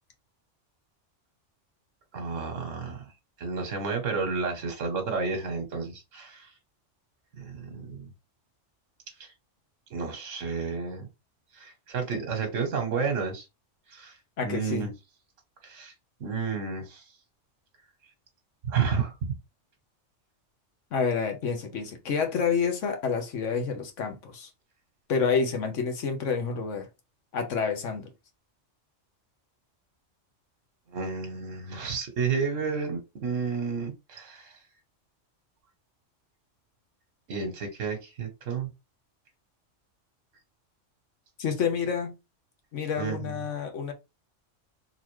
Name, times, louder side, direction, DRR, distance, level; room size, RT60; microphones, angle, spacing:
voice 1, 2.1-3.0 3.4-6.5 7.4-8.1 9.2-9.3 9.9-11.1 11.5-13.4 13.9-14.1 14.4-14.9 15.6-15.9 16.2-17.0 18.7-19.3 30.9-34.5 37.3-38.7 43.0-43.4, right 5 dB, 80° right, 1.3 m, -31 dB
voice 2, 14.4-14.9 20.9-24.5 25.1-26.9 27.3-28.1 41.4-42.1 42.7-43.9, left 6 dB, 75° left, 1.3 m, -28 dB
3.9 x 2.8 x 3.0 m
omnidirectional pair, 1.3 m